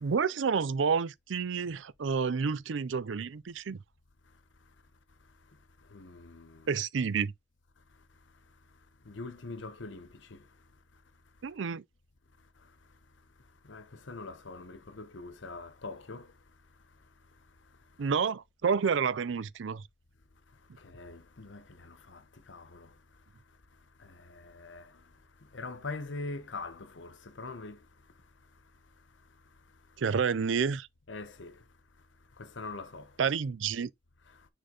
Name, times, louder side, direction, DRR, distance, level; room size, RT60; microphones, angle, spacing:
voice 1, 0.0-3.8 6.7-7.3 11.4-11.8 18.0-19.8 30.0-30.9 33.2-33.9, right 6 dB, 80° right, 0.5 m, -29 dB
voice 2, 5.9-6.6 9.1-10.4 13.7-16.2 20.9-22.2 22.5-22.9 24.3-24.8 25.5-27.8 31.1-31.5 32.4-33.0, left 3 dB, 80° left, 1.0 m, -42 dB
6.6 x 3.9 x 3.8 m
head